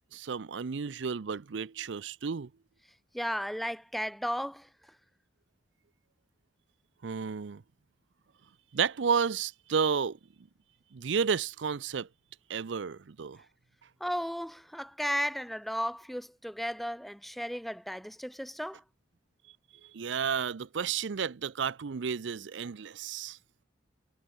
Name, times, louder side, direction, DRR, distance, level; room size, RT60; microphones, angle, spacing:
voice 1, 0.1-2.5 7.0-7.6 8.7-10.2 10.9-12.1 12.5-13.4 19.8-23.4, right 6 dB, 80° right, 0.5 m, -32 dB
voice 2, 3.1-4.7 14.0-18.8, equal, ahead, 1.6 m, -34 dB
head